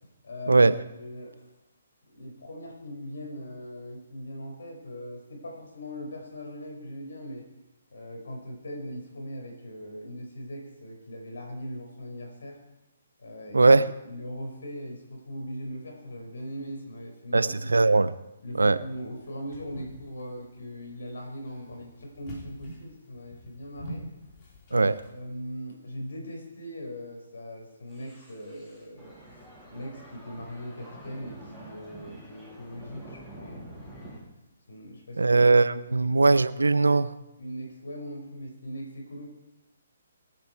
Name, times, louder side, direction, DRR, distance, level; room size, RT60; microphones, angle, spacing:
voice 1, 0.2-0.7 1.0-1.4 2.1-7.4 7.9-12.6 13.2-13.7 14.0-17.7 18.4-24.0 24.7-29.1 29.7-34.2 34.7-35.2 35.8-36.2 37.4-39.3, equal, 65° left, 1 dB, 4.9 m, -40 dB
voice 2, 13.5-13.9 17.3-18.1 18.6-18.8 24.7-24.9 35.2-37.1, right 3 dB, 80° right, 15 dB, 0.7 m, -20 dB
sound 1, 18.9-25.1, equal, 30° left, 3.6 m, -45 dB
sound 2, 27.9-34.2, right 1 dB, 5° left, 7.0 m, -47 dB
24.0 x 9.2 x 4.7 m, 0.95 s
figure-of-eight pair, 135°, 0 cm